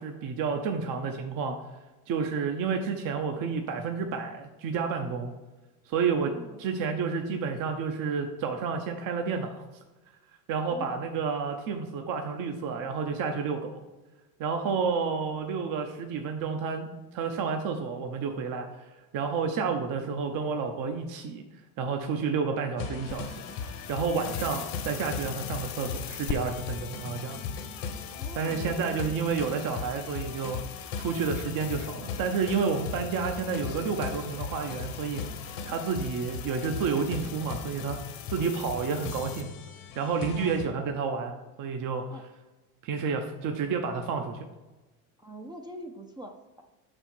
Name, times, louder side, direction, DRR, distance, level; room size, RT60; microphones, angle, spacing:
voice 1, 0.0-1.6 2.1-5.3 5.9-6.3 6.6-9.6 10.5-13.7 14.4-18.7 19.1-21.4 21.8-23.3 23.6-27.4 28.3-30.6 31.0-35.4 35.6-39.5 40.0-42.2 42.8-44.4, right 5 dB, 50° right, 4 dB, 0.7 m, -30 dB
voice 2, 6.3-6.6 10.7-10.9 28.1-29.3 40.3-40.7 42.1-42.2 45.2-46.6, right 1 dB, 10° right, 2 dB, 0.4 m, -44 dB
sound 1, 22.8-40.7, left 6 dB, 75° left, 1.2 m, -38 dB
sound 2, 23.0-39.4, left 10 dB, 40° left, 0.5 m, -43 dB
5.6 x 4.4 x 4.4 m, 1.1 s
supercardioid pair, 110°, 43 cm